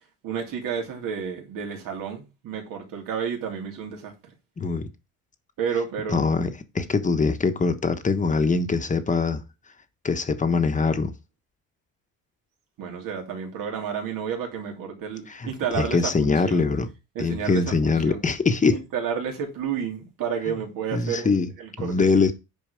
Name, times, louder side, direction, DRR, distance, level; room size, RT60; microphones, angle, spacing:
voice 1, 0.2-4.1 5.6-6.2 12.8-16.6 17.1-18.2 18.7-22.2, right 7 dB, 75° right, 2.9 m, -31 dB
voice 2, 4.6-4.9 6.1-9.4 10.0-11.1 15.3-15.5 15.7-16.9 17.2-18.8 20.9-21.5 21.8-22.3, left 4 dB, 20° left, 1.1 m, -23 dB
9.1 x 5.1 x 5.0 m
cardioid pair, 125°, 34 cm